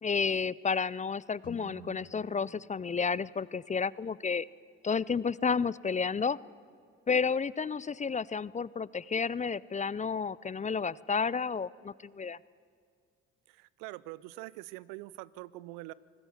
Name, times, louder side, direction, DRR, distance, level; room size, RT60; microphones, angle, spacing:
voice 1, 0.0-4.5 4.8-6.4 7.1-12.4, left 5 dB, 20° left, 22 dB, 0.5 m, -31 dB
Guitar, 1.4-4.0, left 2 dB, 60° left, 4.5 m, -52 dB
voice 2, 13.5-15.9, right 19 dB, 75° right, 20 dB, 0.6 m, -44 dB
25.5 x 19.5 x 7.2 m, 2.3 s
hypercardioid pair, 50°, 33 cm